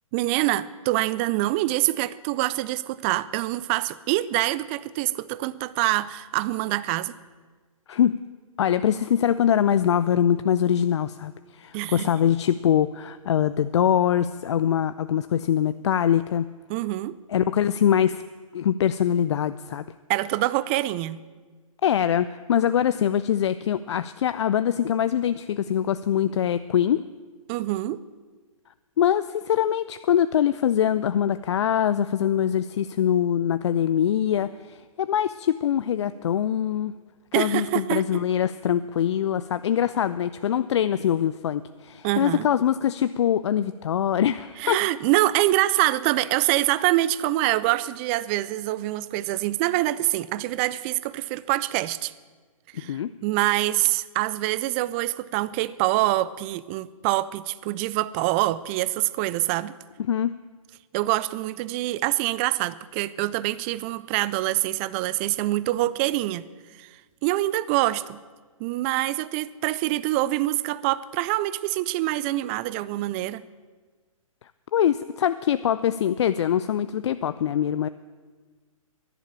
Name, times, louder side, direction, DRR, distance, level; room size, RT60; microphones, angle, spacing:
voice 1, 0.1-7.1 11.7-12.1 16.7-17.2 20.1-21.2 27.5-28.0 37.3-38.1 42.0-42.5 44.6-52.1 52.7-59.7 60.9-66.5 66.8-66.9 67.2-68.2 68.6-73.4, right 16 dB, 20° right, 19 dB, 0.4 m, -25 dB
voice 2, 8.6-16.5 17.3-18.2 18.5-19.8 21.8-27.0 29.0-36.9 37.4-44.8 52.8-53.1 60.1-60.3 74.7-77.9, left 9 dB, 55° left, 13 dB, 0.4 m, -23 dB
11.0 x 11.0 x 8.8 m, 1.4 s
figure-of-eight pair, 130°, 18 cm